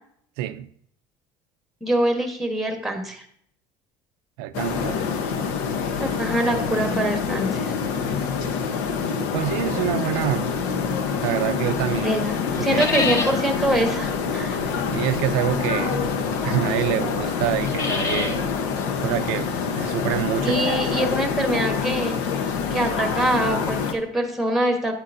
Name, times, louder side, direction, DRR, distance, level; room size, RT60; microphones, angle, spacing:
voice 1, 0.4-0.7 4.4-5.0 9.3-10.5 11.2-12.1 12.7-12.9 14.9-16.0 16.4-18.4 19.0-20.7, right 13 dB, 90° right, 0.4 m, -26 dB
voice 2, 1.8-3.2 6.0-7.7 12.0-14.6 20.4-22.2 22.7-24.9, right 1 dB, ahead, 1.2 m, -24 dB
sound 1, 4.5-23.9, left 6 dB, 90° left, 0.9 m, -26 dB
sound 2, 9.5-11.5 11.8-23.2, left 3 dB, 30° left, 1.1 m, -33 dB
9.0 x 8.4 x 2.6 m
cardioid pair, 145°, 10 cm